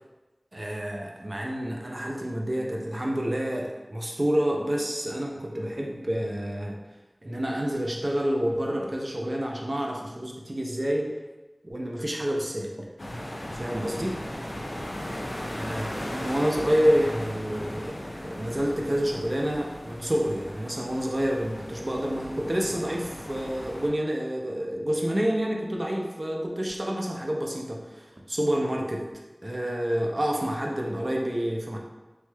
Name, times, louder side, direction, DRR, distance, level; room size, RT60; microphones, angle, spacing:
voice 1, 0.5-6.8 7.2-11.1 11.6-12.9 13.5-14.2 15.6-29.0 29.4-31.8, equal, 50° right, 0 dB, 0.5 m, -28 dB
sound 1, 13.0-23.9, left 1 dB, 75° left, 0.5 m, -37 dB
3.1 x 3.1 x 2.2 m, 1.1 s
wide cardioid pair, 50°, 0 cm